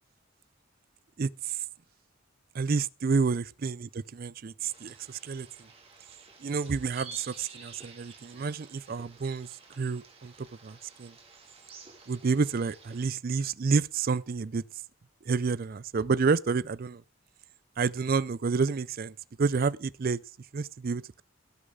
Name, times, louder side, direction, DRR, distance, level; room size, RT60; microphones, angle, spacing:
voice 1, 1.2-1.6 2.5-5.7 6.4-9.5 9.8-11.1 12.1-14.6 15.3-17.0 17.8-20.2 20.5-21.2, right 4 dB, 45° right, 0.4 m, -29 dB
sound 1, 4.7-13.1, right 4 dB, 30° right, 2.2 m, -51 dB
17.5 x 6.6 x 3.7 m
head